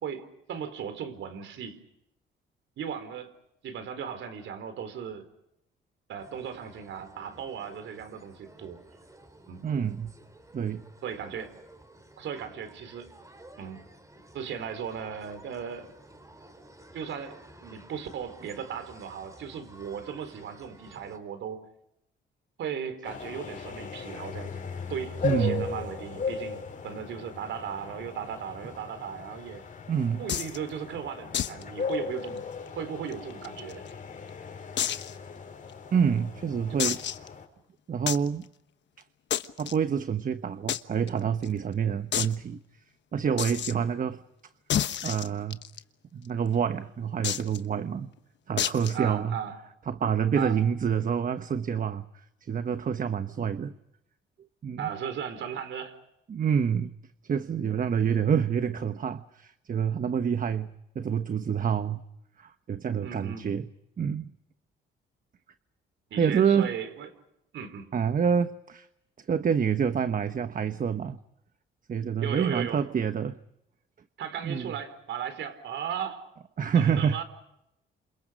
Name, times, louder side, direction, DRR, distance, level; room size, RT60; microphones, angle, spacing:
voice 1, 0.0-1.8 2.8-3.3 3.6-5.3 6.1-8.8 9.5-9.6 11.0-11.5 12.2-13.1 13.6-13.8 14.3-15.9 16.9-17.4 17.6-21.6 22.6-24.6 24.9-29.6 30.2-32.4 32.8-33.8 36.7-36.8 48.9-49.5 50.4-50.6 54.8-56.0 63.0-63.5 66.1-67.1 67.5-67.9 72.2-72.8 74.2-76.2 76.7-77.2, right 8 dB, 75° right, 10 dB, 4.5 m, -36 dB
sound 1, 6.2-21.2, right 1 dB, 15° right, 4.7 m, -53 dB
voice 2, 9.6-10.1 10.5-10.8 25.2-25.7 29.9-30.2 35.9-37.0 37.9-38.5 39.6-42.6 43.1-44.2 45.0-45.6 46.1-48.1 48.5-49.4 49.9-52.0 52.5-53.7 54.6-54.9 56.3-56.9 57.3-62.0 62.4-63.7 64.0-64.3 66.1-66.7 67.9-68.9 69.3-71.2 71.9-73.4 74.4-74.7 76.6-77.2, right 7 dB, 45° right, 10 dB, 1.1 m, -27 dB
sound 2, 23.0-37.4, left 5 dB, 40° left, 5.8 m, -37 dB
sound 3, 30.3-30.6 31.3-31.6 31.9-32.0 32.4-32.5 33.1-33.9 34.8-35.1 35.7-35.8 36.8-37.3 38.1-38.3 39.3-39.7 40.7-40.8 41.1-41.2 41.4-41.5 42.1-42.4 43.4-43.7 44.7-45.8 47.2-47.6 48.6-49.0, left 10 dB, 65° left, 1.2 m, -29 dB
29.5 x 28.0 x 5.3 m, 0.82 s
cardioid pair, 90°, 20 cm